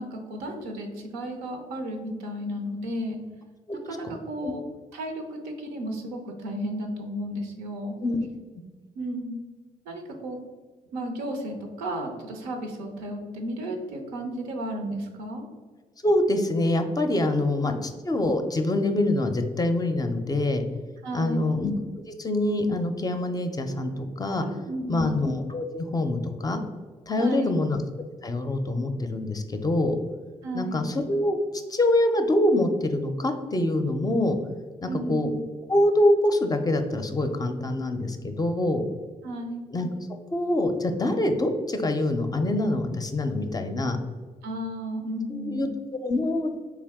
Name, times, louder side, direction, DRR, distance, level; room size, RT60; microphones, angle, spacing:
voice 1, 0.0-3.2 3.9-4.6 4.9-7.9 9.0-9.4 9.9-10.4 10.9-15.5 17.3-17.8 21.0-21.5 24.4-25.2 27.2-27.6 30.4-30.9 34.9-35.4 39.2-39.7 44.4-45.7, equal, 90° right, 3 dB, 0.6 m, -33 dB
voice 2, 16.0-20.6 21.1-21.7 22.2-24.4 24.9-26.6 27.1-27.8 28.2-30.0 30.5-31.4 31.7-34.4 34.8-35.3 35.7-38.8 39.7-39.9 40.3-44.0 45.3-45.7 46.0-46.5, left 1 dB, 25° left, 6 dB, 0.5 m, -25 dB
3.4 x 2.6 x 3.5 m, 1.5 s
supercardioid pair, 50°, 16 cm